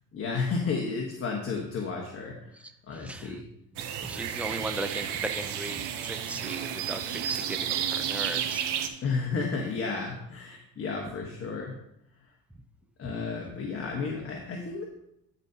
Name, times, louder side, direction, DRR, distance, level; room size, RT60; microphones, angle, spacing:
voice 1, 0.1-2.5 2.9-3.4 9.0-11.8 13.0-14.8, left 4 dB, 30° left, 0 dB, 1.3 m, -32 dB
sound 1, 3.8-8.9, right 9 dB, 65° right, 1.1 m, -32 dB
voice 2, 4.0-8.6, right 2 dB, 5° right, 8 dB, 0.4 m, -37 dB
13.5 x 5.4 x 2.8 m, 0.81 s
cardioid pair, 120°, 43 cm